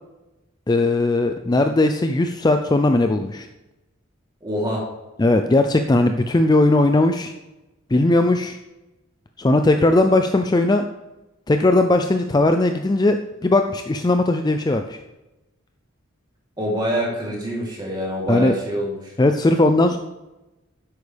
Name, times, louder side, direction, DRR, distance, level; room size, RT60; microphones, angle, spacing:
voice 1, 0.7-3.5 5.2-7.3 7.9-8.6 9.4-10.8 11.5-15.0 18.3-18.5 19.2-20.0, left 2 dB, 20° left, 7 dB, 0.4 m, -18 dB
voice 2, 4.4-4.8 16.6-19.1, equal, 20° right, -4 dB, 3.1 m, -25 dB
10.5 x 8.1 x 3.4 m, 1.0 s
head